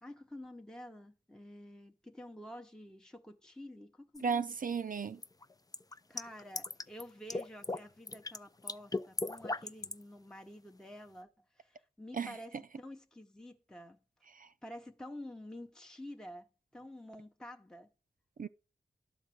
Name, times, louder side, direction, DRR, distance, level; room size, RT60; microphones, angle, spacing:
voice 1, 0.0-4.5 6.1-14.0 14.6-17.9, left 1 dB, 5° left, 0.8 m, -49 dB
sound 1, 4.2-4.3 5.2-7.0 7.3-7.8 8.1-8.4 8.7-10.0, left 2 dB, 20° left, 0.4 m, -37 dB
voice 2, 4.2-5.2 12.1-12.3 14.4-14.5 18.4-18.5, right 5 dB, 50° right, 0.5 m, -34 dB
12.0 x 3.9 x 7.7 m
cardioid pair, 50°, 18 cm